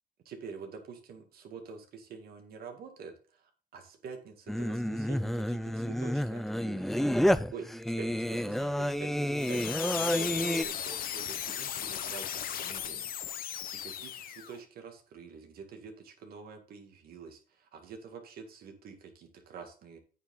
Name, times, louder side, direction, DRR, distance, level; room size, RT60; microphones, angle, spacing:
voice 1, 0.3-7.0 7.5-20.0, right 5 dB, 65° right, 4 dB, 2.2 m, -47 dB
Singing, 4.5-10.6, equal, ahead, 0.4 m, -30 dB
sound 1, 9.4-14.6, left 9 dB, 60° left, 1.0 m, -36 dB
8.8 x 7.1 x 3.9 m, 0.38 s
cardioid pair, 110°, 17 cm